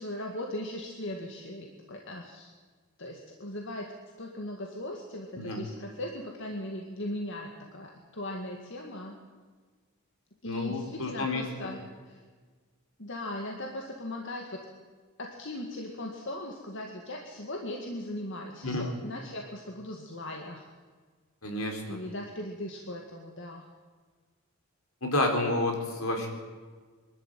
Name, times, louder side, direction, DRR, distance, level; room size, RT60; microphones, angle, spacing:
voice 1, 0.0-2.5 3.0-3.9 4.2-9.2 10.4-11.8 12.1-12.2 13.0-14.7 15.2-20.7 21.8-23.7 26.2-26.3, left 1 dB, 55° left, 1 dB, 2.1 m, -38 dB
voice 2, 10.4-11.7 18.6-18.9 21.4-22.0 25.0-26.3, left 2 dB, 75° left, 3 dB, 4.1 m, -30 dB
23.5 x 12.5 x 9.2 m, 1.5 s
head